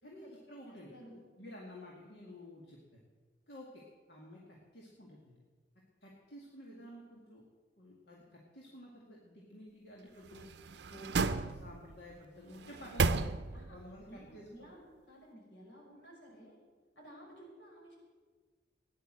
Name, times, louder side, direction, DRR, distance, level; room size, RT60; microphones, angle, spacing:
voice 1, 0.0-3.0 3.5-3.8 4.1-5.4 6.0-7.4 7.8-10.4 10.9-13.3 13.7-14.7, equal, 70° left, -3 dB, 2.2 m, -52 dB
voice 2, 0.7-1.2 13.5-13.8 14.1-16.6 17.0-18.0, equal, 85° left, -2 dB, 5.8 m, -55 dB
sound 1, 10.3-12.0 12.5-13.8 14.2-14.3, right 4 dB, 75° right, 0.6 m, -34 dB
15.5 x 10.5 x 7.6 m, 1.4 s
head